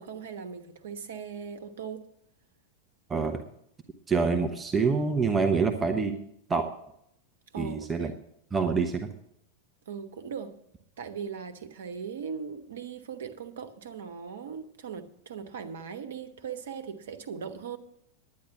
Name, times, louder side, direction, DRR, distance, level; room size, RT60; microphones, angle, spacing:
voice 1, 0.0-2.0 6.0-6.2 7.5-8.1 9.9-10.5 11.0-17.8, right 7 dB, 60° right, 1.1 m, -39 dB
voice 2, 3.1-3.4 4.1-6.1 6.5-6.7 7.6-8.1 8.5-9.1, right 4 dB, 15° right, 0.9 m, -26 dB
10.5 x 9.6 x 6.0 m
figure-of-eight pair, 90°, 0 cm